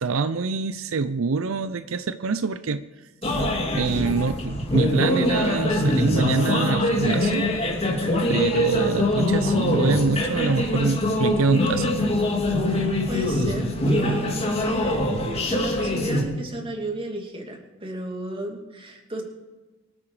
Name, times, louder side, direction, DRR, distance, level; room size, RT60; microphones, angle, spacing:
voice 1, 0.0-2.8 3.2-3.5 3.7-7.5 8.3-11.9, right 4 dB, 80° right, 12 dB, 0.6 m, -25 dB
sound 1, 3.2-16.2, left 1 dB, 30° left, 2.5 m, -23 dB
voice 2, 12.6-15.0 15.3-19.2, right 1 dB, 25° right, 1 dB, 2.7 m, -34 dB
24.5 x 9.0 x 4.9 m, 1.2 s
head